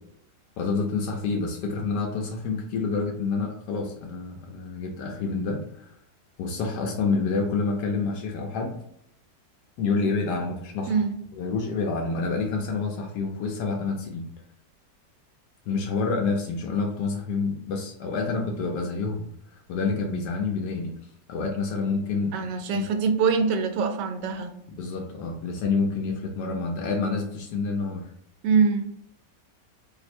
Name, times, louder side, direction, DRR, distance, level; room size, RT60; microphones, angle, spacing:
voice 1, 0.6-5.9 6.4-8.8 9.8-11.0 11.4-14.3 15.7-19.3 19.7-20.9 21.3-22.3 22.7-22.8 24.8-28.1, left 4 dB, 80° left, 1 dB, 1.2 m, -28 dB
voice 2, 22.3-24.5 28.4-28.9, right 5 dB, 85° right, 6 dB, 1.2 m, -24 dB
3.1 x 2.0 x 4.2 m, 0.70 s
omnidirectional pair, 1.8 m